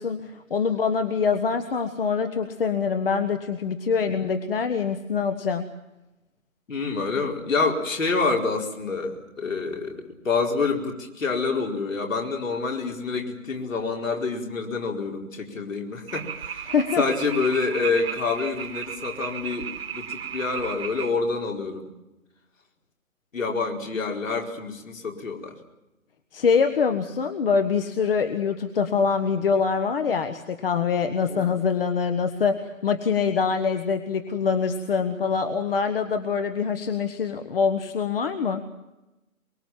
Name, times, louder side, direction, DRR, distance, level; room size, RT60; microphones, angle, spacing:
voice 1, 0.0-5.7 16.7-17.0 26.3-38.6, left 5 dB, 40° left, 8 dB, 1.4 m, -24 dB
voice 2, 6.7-21.9 23.3-25.6 30.1-30.2 31.3-31.5, left 4 dB, 65° left, 1 dB, 4.8 m, -27 dB
sound 1, 16.1-21.1, right 8 dB, 45° right, 1.5 m, -35 dB
23.5 x 22.5 x 7.5 m, 1.0 s
figure-of-eight pair, 145°, 42 cm